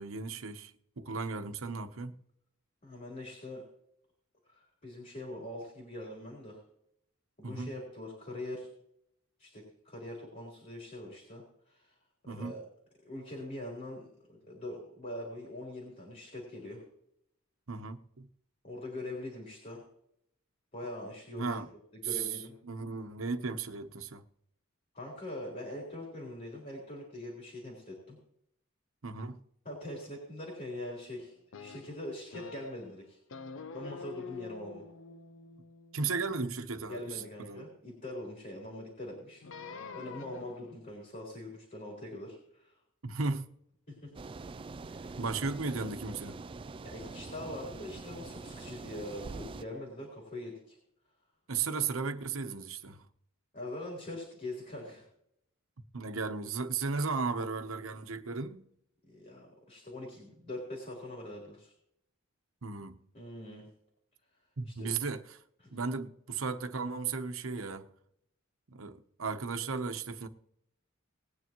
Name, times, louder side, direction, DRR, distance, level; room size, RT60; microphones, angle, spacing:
voice 1, 0.0-2.2 7.4-7.7 12.3-12.5 17.7-18.3 21.4-21.7 22.1-22.3 22.6-24.2 29.0-29.4 35.9-37.7 43.0-43.5 45.2-46.4 51.5-53.0 55.9-58.7 62.6-63.0 64.6-65.4 65.7-67.9 68.7-70.3, right 4 dB, 80° right, 1.0 m, -35 dB
voice 2, 2.8-3.6 4.5-6.6 7.4-8.7 9.4-11.9 12.3-12.6 13.0-16.8 18.6-19.8 20.7-21.6 21.9-22.6 24.9-28.2 29.6-33.2 33.7-34.9 36.9-39.4 39.9-42.7 43.9-44.2 44.9-45.2 46.8-50.8 53.5-55.0 59.1-61.7 63.1-63.6 64.7-64.9 65.6-65.7, left 1 dB, 40° left, 4.0 m, -43 dB
sound 1, 31.5-32.9 33.3-37.6 39.4-40.7, left 5 dB, 65° left, 0.6 m, -47 dB
sound 2, 44.1-49.6, right 3 dB, 25° right, 0.3 m, -44 dB
20.0 x 9.7 x 3.1 m
head